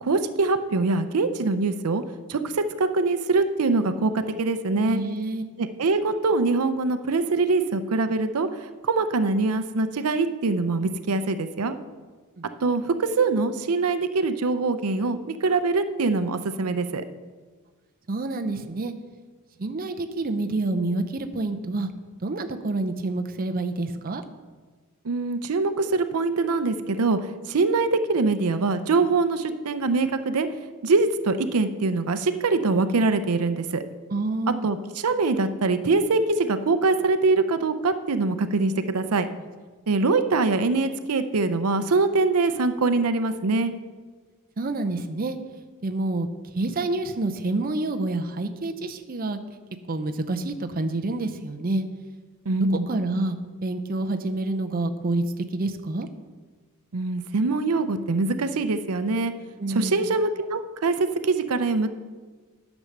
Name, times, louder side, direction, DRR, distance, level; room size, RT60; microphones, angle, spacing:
voice 1, 0.0-2.0 2.3-5.0 5.6-8.5 8.8-11.8 12.6-17.0 25.0-27.2 27.5-30.5 30.8-33.8 34.6-39.3 39.9-43.7 52.5-52.9 56.9-59.3 59.7-61.9, right 3 dB, 90° right, 10 dB, 0.6 m, -23 dB
voice 2, 4.9-5.4 12.4-12.5 18.1-18.9 19.6-21.9 22.2-24.2 34.1-34.7 44.6-45.4 45.8-46.3 46.5-49.4 49.9-51.8 52.7-55.3 55.5-56.1 59.6-60.1, right 2 dB, 40° right, 7 dB, 0.6 m, -28 dB
9.9 x 6.2 x 6.5 m, 1.4 s
head